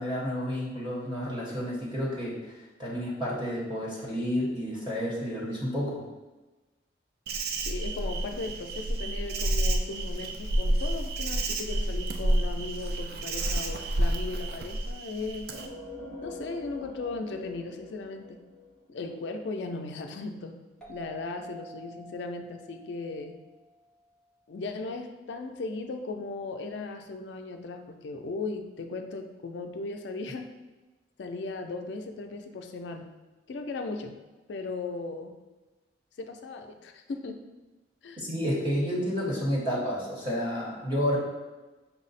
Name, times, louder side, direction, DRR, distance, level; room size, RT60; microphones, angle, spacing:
voice 1, 0.0-6.0 38.2-41.2, equal, 25° right, -5 dB, 1.0 m, -30 dB
Insect, 7.3-15.7, right 1 dB, 55° right, 0.4 m, -29 dB
voice 2, 7.7-15.5 16.2-18.4 18.9-20.6 20.9-23.4 24.5-30.5 31.2-33.1 33.5-34.1 34.5-35.4 36.2-37.5 38.0-38.2, left 3 dB, 75° left, 5 dB, 0.4 m, -37 dB
sound 1, 15.5-19.1, left 1 dB, 90° right, 0.9 m, -44 dB
sound 2, 20.8-24.1, right 1 dB, 5° left, 0.7 m, -48 dB
5.7 x 2.0 x 4.0 m, 1.2 s
head